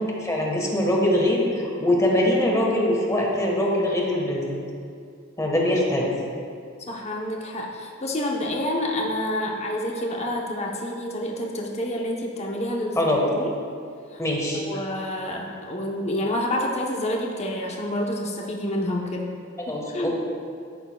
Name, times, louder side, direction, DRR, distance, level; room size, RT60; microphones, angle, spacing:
voice 1, 0.2-4.5 5.4-6.1 13.0-13.2 14.2-14.6 19.6-20.2, left 1 dB, 15° left, -2 dB, 1.4 m, -22 dB
voice 2, 6.9-13.0 13.2-13.5 14.1-14.2 14.5-19.3 19.9-20.2, left 1 dB, 30° left, -1 dB, 0.9 m, -28 dB
14.0 x 6.6 x 2.3 m, 2.4 s
head